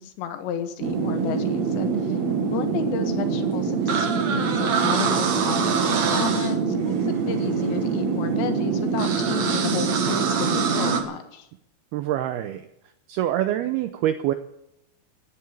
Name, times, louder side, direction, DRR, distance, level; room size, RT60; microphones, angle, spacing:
voice 1, 0.0-11.5, left 9 dB, 75° left, 8 dB, 3.5 m, -33 dB
sound 1, 0.8-11.0, right 5 dB, 55° right, 2.0 m, -24 dB
voice 2, 11.9-12.7 13.1-14.3, right 12 dB, 85° right, 10 dB, 2.2 m, -25 dB
17.0 x 9.6 x 8.6 m, 0.83 s
omnidirectional pair, 5.4 m